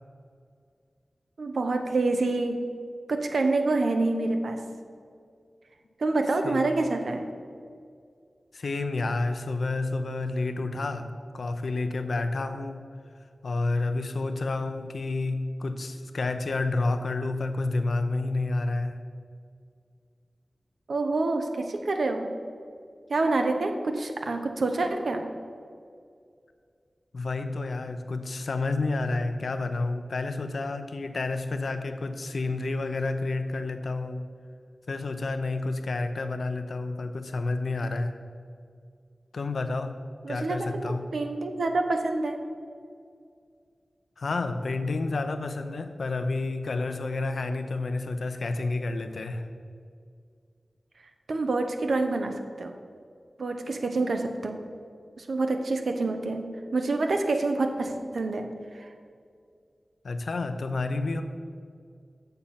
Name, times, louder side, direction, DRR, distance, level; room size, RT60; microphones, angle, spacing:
voice 1, 1.4-2.6 3.1-4.6 6.0-7.3 20.9-22.3 23.1-25.2 40.2-42.4 51.3-52.8 53.4-54.6 55.2-58.5 58.7-58.9, right 2 dB, 85° right, 5 dB, 0.7 m, -27 dB
voice 2, 8.5-12.9 13.4-19.0 27.1-34.3 34.9-38.2 39.3-40.0 40.3-41.1 44.2-49.5 60.0-61.2, left 3 dB, 85° left, 8 dB, 0.6 m, -30 dB
7.0 x 6.6 x 5.7 m, 2.2 s
wide cardioid pair, 85°, 0 cm